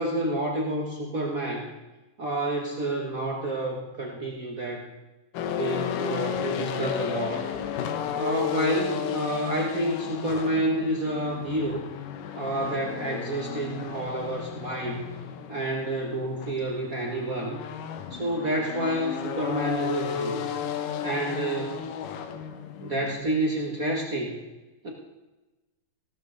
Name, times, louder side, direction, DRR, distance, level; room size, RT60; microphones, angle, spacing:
voice 1, 0.0-1.7 2.2-4.8 5.5-7.5 8.1-11.8 12.3-15.1 15.5-17.6 18.1-20.5 21.0-21.9 22.8-24.4 24.8-24.9, right 1 dB, 60° right, -1 dB, 0.8 m, -29 dB
sound 1, 5.3-23.2, left 8 dB, 75° left, 2.5 m, -33 dB
15.5 x 13.0 x 3.9 m, 1.1 s
omnidirectional pair, 3.9 m